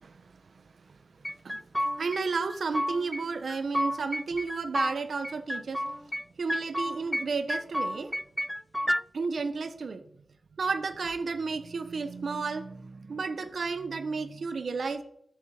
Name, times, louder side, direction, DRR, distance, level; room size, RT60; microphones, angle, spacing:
voice 1, 0.0-1.6 2.0-5.8 6.4-8.1 9.1-10.0 10.6-15.0, right 4 dB, 80° right, 10 dB, 1.1 m, -33 dB
sound 1, 1.2-2.2 2.5-3.2 3.5-4.9 5.2-6.2 6.5-7.2 7.5-9.0, equal, 5° left, 0.3 m, -31 dB
14.0 x 7.8 x 5.0 m, 0.73 s
cardioid pair, 60°, 0 cm